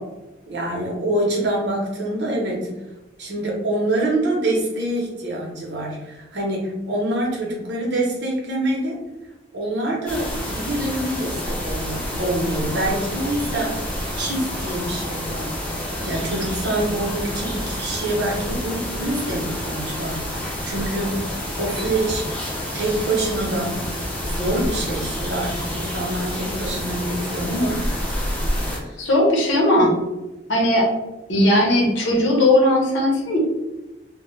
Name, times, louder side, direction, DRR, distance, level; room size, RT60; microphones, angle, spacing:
voice 1, 0.5-2.7 3.2-9.0 9.5-13.9 14.2-15.6 16.0-21.2 21.6-22.2 22.7-23.8 24.2-27.8 28.8-29.1, right 1 dB, 70° right, -3 dB, 0.8 m, -25 dB
sound 1, 10.1-28.8, equal, 5° left, 0.4 m, -28 dB
voice 2, 29.0-30.0 30.5-30.9 31.3-33.4, left 1 dB, 85° left, -2 dB, 0.8 m, -17 dB
2.2 x 2.1 x 3.0 m, 1.0 s
head